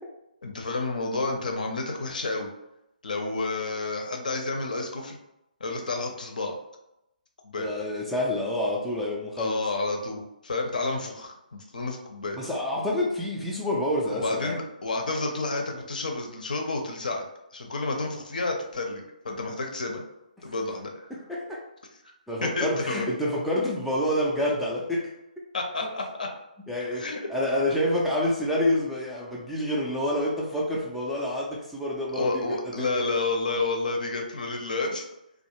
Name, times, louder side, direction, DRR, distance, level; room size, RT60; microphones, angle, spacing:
voice 1, 0.4-2.5 3.0-5.2 5.6-6.6 7.4-7.7 9.4-12.4 14.1-17.2 17.5-20.0 20.4-21.1 22.4-23.1 25.5-26.3 26.9-27.2 32.1-35.1, left 3 dB, 65° left, 2 dB, 0.5 m, -30 dB
voice 2, 7.6-9.6 12.4-14.6 21.1-21.6 22.3-25.1 26.7-33.1, left 1 dB, ahead, -6 dB, 0.3 m, -28 dB
2.3 x 2.0 x 2.9 m, 0.87 s
figure-of-eight pair, 140°, 5 cm